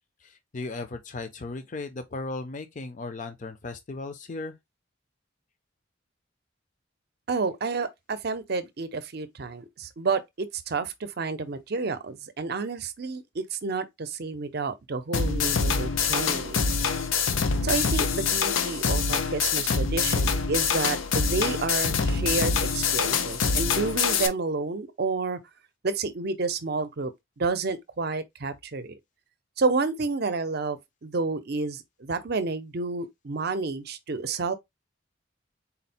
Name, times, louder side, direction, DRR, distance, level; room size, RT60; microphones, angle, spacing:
voice 1, 0.2-4.5, left 3 dB, 40° left, 0.6 m, -36 dB
voice 2, 7.3-16.6 17.6-25.4 25.8-27.1 27.4-29.0 29.6-34.5, right 4 dB, 55° right, 0.6 m, -30 dB
sound 1, 15.1-24.3, left 5 dB, 90° left, 0.6 m, -25 dB
4.1 x 2.1 x 4.2 m
head